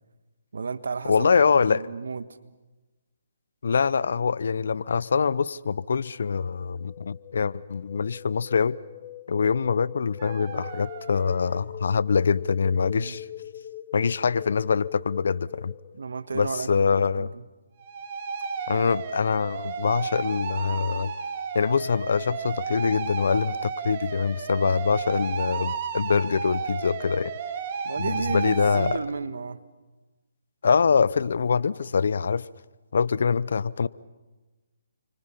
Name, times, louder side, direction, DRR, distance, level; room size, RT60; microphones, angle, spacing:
voice 1, 0.5-1.3 1.6-2.3 12.9-13.2 16.0-17.4 27.8-29.6, right 4 dB, 75° right, 1.3 m, -33 dB
voice 2, 1.1-1.9 3.6-8.8 9.3-13.3 13.9-15.7 16.3-17.3 18.7-21.1 21.5-27.4 28.0-29.0 30.6-32.5 32.9-33.9, left 5 dB, 70° left, 0.7 m, -24 dB
sound 1, 6.1-16.0, left 12 dB, 25° left, 1.2 m, -43 dB
sound 2, 10.2-11.7 17.8-29.0, right 6 dB, 40° right, 2.2 m, -33 dB
29.5 x 24.5 x 5.7 m
hypercardioid pair, 150°, 0 cm